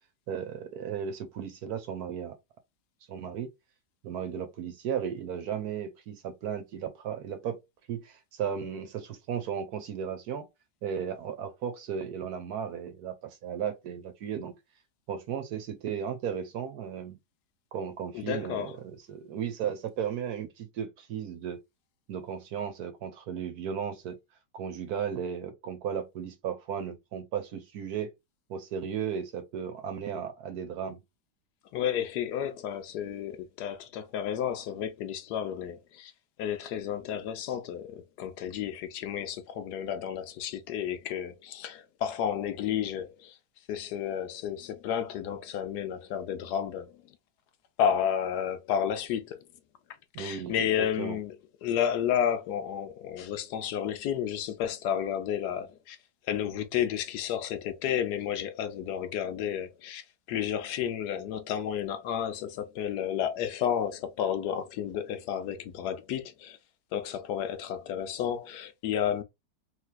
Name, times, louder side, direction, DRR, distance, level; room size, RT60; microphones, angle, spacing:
voice 1, 0.3-2.4 3.1-3.5 4.0-7.6 7.9-10.4 10.8-14.5 15.1-17.2 17.7-18.7 19.1-21.6 22.1-24.1 24.5-28.1 28.5-31.0 50.1-51.2, right 8 dB, 65° right, 1.2 m, -35 dB
voice 2, 18.1-18.7 31.7-36.1 36.4-43.4 43.7-47.0 47.8-49.4 50.2-51.3 51.6-56.0 56.2-66.6 66.9-69.2, left 9 dB, 75° left, 1.1 m, -31 dB
3.3 x 3.0 x 2.2 m
omnidirectional pair, 1.9 m